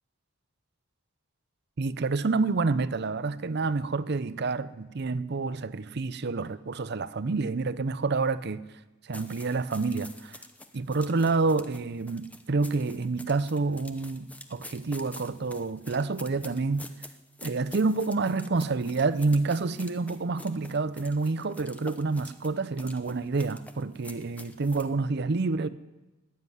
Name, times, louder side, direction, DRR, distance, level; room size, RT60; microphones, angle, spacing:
voice 1, 1.8-8.6 9.0-10.4 10.7-16.9 17.4-25.7, right 3 dB, 55° right, 0.6 m, -28 dB
sound 1, 9.1-24.9, left 2 dB, 5° left, 0.8 m, -47 dB
19.0 x 7.6 x 9.8 m
head